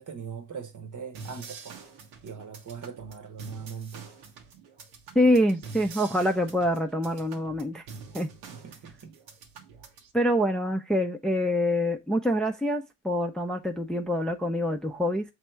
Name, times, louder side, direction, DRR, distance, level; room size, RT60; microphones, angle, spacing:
voice 1, 0.0-1.8 2.2-4.1 8.5-9.1, right 6 dB, 45° right, 1.1 m, -40 dB
sound 1, 1.1-10.1, right 5 dB, 90° right, 1.2 m, -46 dB
voice 2, 5.1-7.8 8.1-8.3 10.1-15.2, equal, ahead, 0.6 m, -25 dB
5.9 x 3.4 x 4.6 m
supercardioid pair, 75°, 42 cm